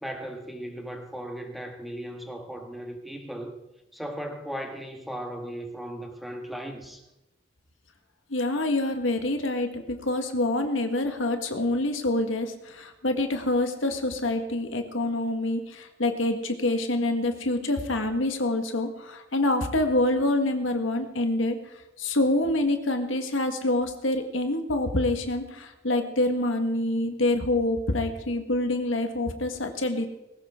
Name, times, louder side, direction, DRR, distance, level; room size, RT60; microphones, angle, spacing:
voice 1, 0.0-3.5 3.9-7.0, right 1 dB, ahead, 3 dB, 1.6 m, -37 dB
voice 2, 8.3-21.6 22.0-30.1, left 2 dB, 85° left, 5 dB, 1.7 m, -26 dB
19.5 x 17.0 x 3.7 m, 0.96 s
head